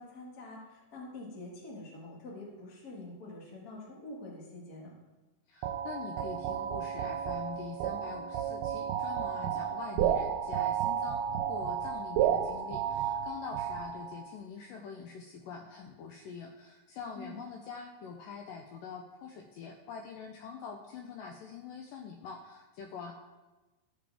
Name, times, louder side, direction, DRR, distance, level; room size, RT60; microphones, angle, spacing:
voice 1, 0.0-4.9 17.1-17.4, left 2 dB, 45° left, -3 dB, 1.2 m, -46 dB
voice 2, 5.5-23.1, left 6 dB, 90° left, 2 dB, 1.9 m, -44 dB
sound 1, 5.6-14.3, right 9 dB, 85° right, 2.5 m, -32 dB
13.0 x 5.0 x 3.5 m, 1.2 s
omnidirectional pair, 4.5 m